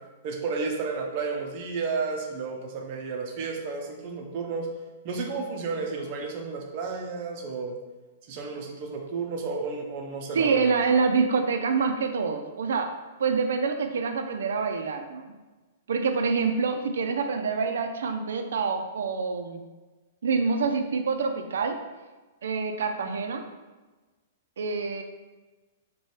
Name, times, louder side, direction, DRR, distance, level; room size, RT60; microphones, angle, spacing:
voice 1, 0.2-4.7 5.0-7.8 8.3-10.7, right 4 dB, 35° right, 2 dB, 0.5 m, -32 dB
voice 2, 10.3-12.9 13.2-15.3 15.9-19.6 20.2-21.8 22.4-23.4 24.6-25.0, right 5 dB, 85° right, 6 dB, 0.4 m, -26 dB
4.2 x 2.2 x 3.2 m, 1.2 s
hypercardioid pair, 175°, 0 cm